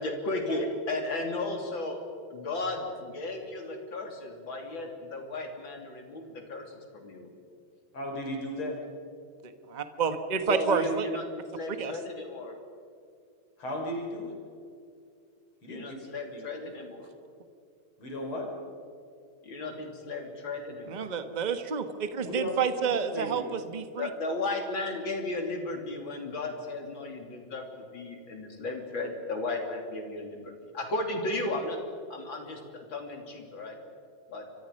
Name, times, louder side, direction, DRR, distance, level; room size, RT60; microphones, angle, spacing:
voice 1, 0.0-2.0 2.3-7.3 10.4-12.6 15.7-17.1 19.4-21.1 24.0-31.8 32.1-33.8 34.3-34.5, left 2 dB, 65° left, 3 dB, 3.9 m, -35 dB
voice 2, 7.9-8.8 13.6-14.3 15.6-16.0 16.3-16.7 18.0-18.5 22.2-23.5, left 1 dB, 80° left, 1 dB, 5.2 m, -35 dB
voice 3, 9.7-11.1 11.8-11.9 20.9-24.1, right 6 dB, 25° right, 9 dB, 1.1 m, -29 dB
29.0 x 25.0 x 5.4 m, 2.4 s
omnidirectional pair, 2.3 m